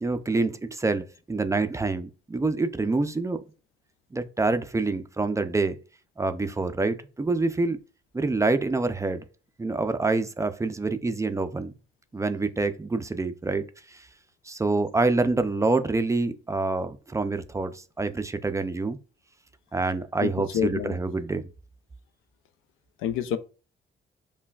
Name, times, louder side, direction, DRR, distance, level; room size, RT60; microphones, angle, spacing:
voice 1, 0.0-3.4 4.1-5.8 6.2-7.8 8.1-9.2 9.6-11.7 12.1-14.0 14.5-19.0 19.7-21.4, right 3 dB, 15° right, 0.4 m, -26 dB
voice 2, 20.2-21.0 23.0-23.4, left 9 dB, 90° left, 0.4 m, -28 dB
5.6 x 2.2 x 2.3 m
cardioid pair, 90°, 20 cm